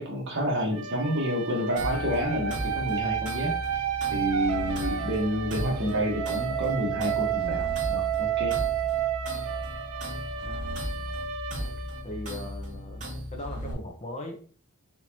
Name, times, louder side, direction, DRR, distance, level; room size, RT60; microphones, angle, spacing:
voice 1, 0.0-3.6 4.1-8.6, equal, 55° right, 0 dB, 1.3 m, -29 dB
sound 1, 0.7-12.5, right 9 dB, 80° right, 0.5 m, -31 dB
sound 2, 1.8-13.7, equal, 35° right, 2.0 m, -36 dB
voice 2, 12.0-14.4, left 1 dB, 30° left, 2 dB, 0.9 m, -39 dB
4.3 x 3.9 x 2.9 m, 0.42 s
head